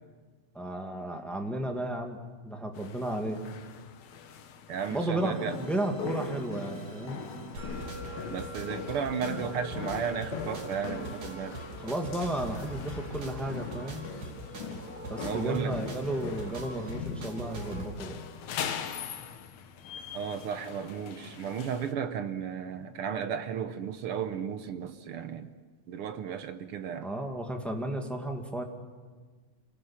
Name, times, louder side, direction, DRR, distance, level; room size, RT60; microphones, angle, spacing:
voice 1, 0.5-3.4 4.9-7.2 11.8-14.1 15.1-18.2 27.0-28.6, right 1 dB, ahead, 3 dB, 1.4 m, -33 dB
sound 1, 2.7-21.9, left 8 dB, 70° left, 2.4 m, -41 dB
voice 2, 4.7-5.6 8.3-11.6 15.2-15.8 20.1-25.5 25.9-27.1, right 7 dB, 65° right, 9 dB, 1.5 m, -34 dB
sound 2, 5.2-17.9, right 2 dB, 80° right, 4.8 m, -42 dB
Musical instrument, 7.6-18.2, left 1 dB, 40° right, 6.2 m, -49 dB
27.0 x 18.5 x 7.2 m, 1.4 s
omnidirectional pair, 3.4 m